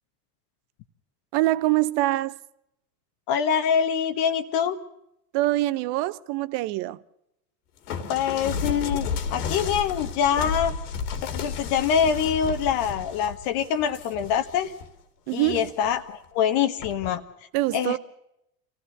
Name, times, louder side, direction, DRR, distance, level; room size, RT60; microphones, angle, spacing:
voice 1, 1.3-2.4 5.3-7.0 15.3-15.7 17.5-18.0, right 17 dB, 55° right, 1.0 m, -24 dB
voice 2, 3.3-4.8 8.1-10.7 11.3-14.7 15.3-17.2 17.7-18.0, left 8 dB, 55° left, 1.5 m, -24 dB
sound 1, 7.9-14.9 15.3-16.0 16.8-17.1, left 5 dB, 75° left, 2.5 m, -32 dB
25.5 x 16.0 x 6.7 m
hypercardioid pair, 90°, 46 cm